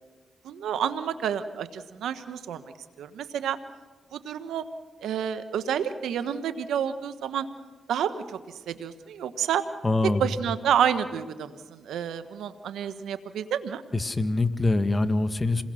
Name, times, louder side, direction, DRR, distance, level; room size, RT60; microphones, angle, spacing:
voice 1, 0.4-2.6 3.0-3.6 4.1-4.6 5.0-7.5 7.9-8.4 8.7-9.6 10.0-13.8, right 9 dB, 85° right, 11 dB, 1.0 m, -29 dB
voice 2, 9.8-10.2 13.9-15.6, left 2 dB, 30° left, 10 dB, 1.7 m, -24 dB
27.0 x 21.0 x 6.3 m, 1.4 s
supercardioid pair, 45°, 0 cm